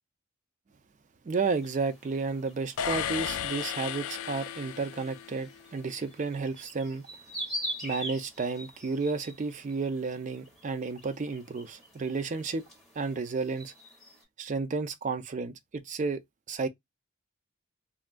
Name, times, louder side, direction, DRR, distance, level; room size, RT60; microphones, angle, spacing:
voice 1, 1.3-7.1 7.8-12.6 13.0-13.7 14.4-16.2 16.5-16.7, right 4 dB, 35° right, 0.3 m, -32 dB
sound 1, 1.4-14.2, equal, ahead, 1.1 m, -44 dB
sound 2, 2.8-5.6, left 9 dB, 70° left, 0.3 m, -34 dB
3.4 x 2.2 x 2.4 m
head